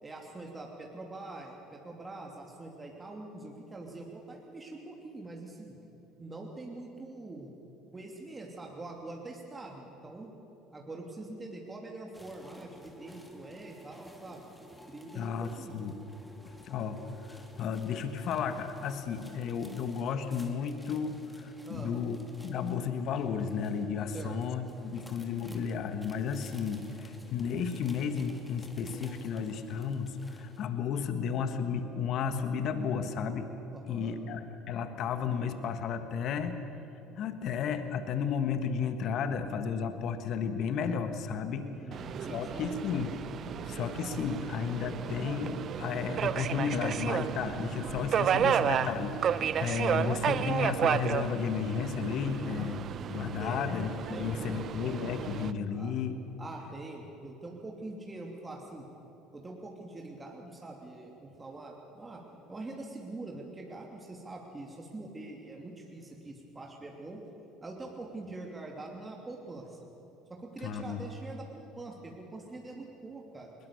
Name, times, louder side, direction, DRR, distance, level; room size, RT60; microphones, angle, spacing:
voice 1, 0.0-5.8 6.2-7.5 7.9-10.3 10.7-14.4 14.9-15.7 21.6-22.0 24.1-24.4 33.7-34.2 41.6-42.7 53.4-53.6 54.1-54.6 55.7-55.9 56.4-58.9 59.3-62.2 62.5-67.2 67.6-69.8 70.3-73.5, right 2 dB, 20° right, 0 dB, 2.9 m, -44 dB
sound 1, 12.1-30.6, equal, 5° left, 2.8 m, -53 dB
voice 2, 15.1-15.9 16.6-17.0 17.3-22.2 22.4-33.5 33.8-36.6 37.2-41.6 42.3-43.2 43.6-52.8 53.1-56.2 70.6-71.0, left 6 dB, 55° left, 9 dB, 1.5 m, -33 dB
Subway metro underground, 41.9-55.5, right 8 dB, 50° right, 0.7 m, -32 dB
21.0 x 20.5 x 7.1 m, 2.9 s
hypercardioid pair, 65°, 0 cm